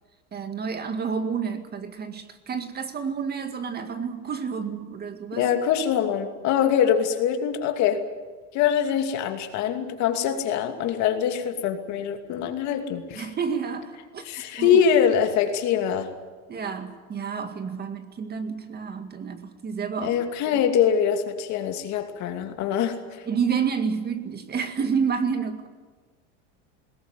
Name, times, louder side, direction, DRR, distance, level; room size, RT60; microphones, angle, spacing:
voice 1, 0.3-5.5 13.2-14.3 14.6-14.8 16.5-20.1 20.5-20.6 23.3-25.7, right 6 dB, 30° right, 8 dB, 2.0 m, -29 dB
voice 2, 5.4-8.1 8.5-13.3 14.2-16.1 20.0-23.2, left 8 dB, 55° left, 6 dB, 2.7 m, -23 dB
20.5 x 17.5 x 9.5 m, 1.4 s
supercardioid pair, 120°, 33 cm